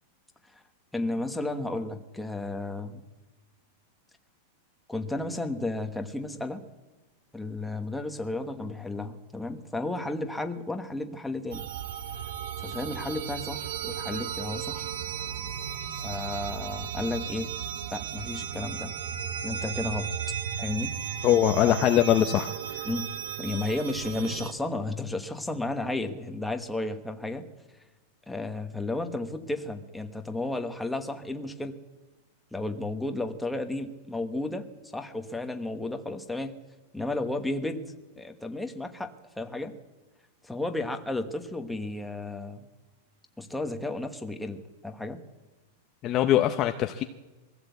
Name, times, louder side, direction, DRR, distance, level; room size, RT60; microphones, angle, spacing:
voice 1, 0.9-3.0 4.9-6.6 7.3-11.7 12.6-14.9 16.0-17.5 17.9-19.0 19.4-20.1 20.6-20.9 21.7-21.8 22.8-23.1 23.4-27.5 28.3-31.8 32.5-36.6 36.9-37.8 38.2-39.7 40.4-42.6 43.4-45.2, left 2 dB, 5° left, 5 dB, 1.2 m, -33 dB
sound 1, 11.5-24.5, right 8 dB, 90° right, 1.8 m, -35 dB
voice 2, 21.2-22.8 46.0-47.0, left 11 dB, 25° left, 7 dB, 0.7 m, -22 dB
22.5 x 15.5 x 8.2 m, 1.1 s
supercardioid pair, 175°, 0 cm